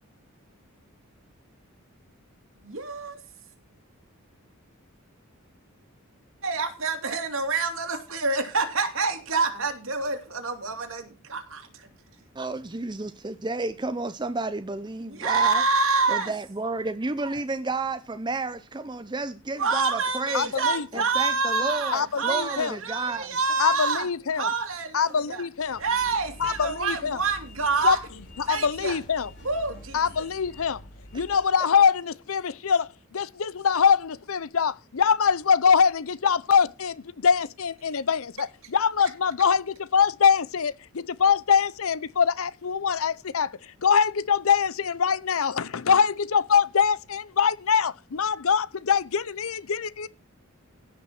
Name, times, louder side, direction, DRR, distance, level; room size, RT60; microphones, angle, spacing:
voice 1, 2.6-3.2 6.4-11.6 15.1-16.3 19.6-24.0 24.4-25.4 25.8-28.0 28.5-29.0 29.4-30.0, right 4 dB, 65° right, 2.8 m, -27 dB
voice 2, 12.3-15.6 16.1-20.5 20.9-23.3, right 3 dB, 20° right, 0.6 m, -31 dB
voice 3, 20.3-20.9 21.9-22.8 23.6-24.5 24.9-25.8 26.4-27.2 27.8-28.0 28.4-29.3 29.9-30.8 31.1-50.1, left 6 dB, 75° left, 0.6 m, -23 dB
sound 1, 25.6-31.5, left 1 dB, 50° left, 7.1 m, -46 dB
16.5 x 6.0 x 6.0 m
head